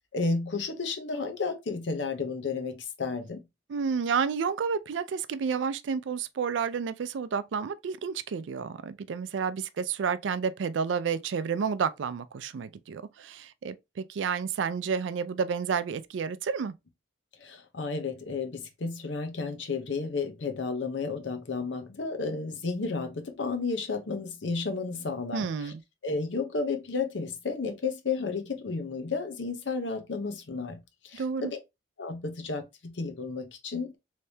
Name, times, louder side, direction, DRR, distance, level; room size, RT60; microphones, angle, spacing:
voice 1, 0.1-3.4 17.4-25.7 26.0-30.8 31.0-31.2 32.0-34.0, left 4 dB, 80° left, 0.8 m, -32 dB
voice 2, 3.7-16.7 25.3-25.8 31.1-31.5, right 6 dB, 85° right, 0.4 m, -30 dB
3.2 x 2.7 x 3.3 m
head